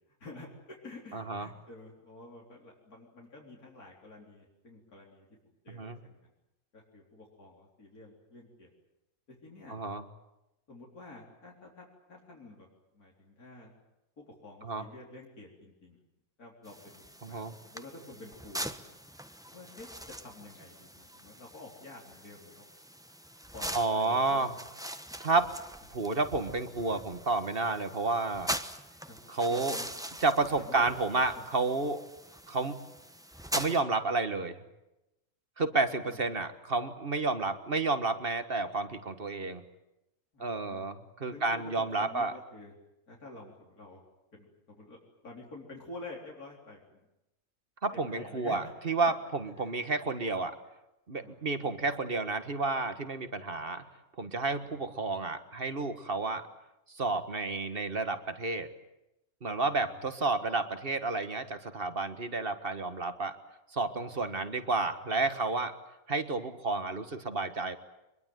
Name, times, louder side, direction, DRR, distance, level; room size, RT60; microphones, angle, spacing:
voice 1, 0.2-5.3 5.6-6.2 6.7-8.7 9.4-9.8 10.7-12.7 12.9-13.7 14.2-16.0 16.4-19.0 19.5-19.9 20.2-22.6 23.5-24.6 29.1-29.2 29.5-29.9 30.6-30.9 35.7-36.2 40.3-40.9 41.3-42.7 43.1-44.0 44.3-45.0 45.2-47.0 47.9-48.7 49.0-49.1 49.6-49.8 51.2-51.8 54.6-54.8 59.6-60.0 64.0-64.3, left 2 dB, 85° left, -2 dB, 4.3 m, -49 dB
voice 2, 1.1-1.5 5.7-6.0 9.7-10.0 14.6-14.8 17.2-17.5 23.7-24.5 25.2-25.5 25.9-28.5 29.3-29.8 30.2-32.0 32.5-32.9 33.5-34.6 35.6-39.6 40.4-42.3 47.8-50.6 51.1-53.8 54.2-56.4 56.9-58.7 59.4-63.4 63.7-65.7 66.1-67.8, right 3 dB, 40° right, 10 dB, 1.7 m, -31 dB
sound 1, 16.6-33.8, equal, 5° right, 1.0 m, -42 dB
24.5 x 22.5 x 9.4 m, 0.92 s
omnidirectional pair, 1.5 m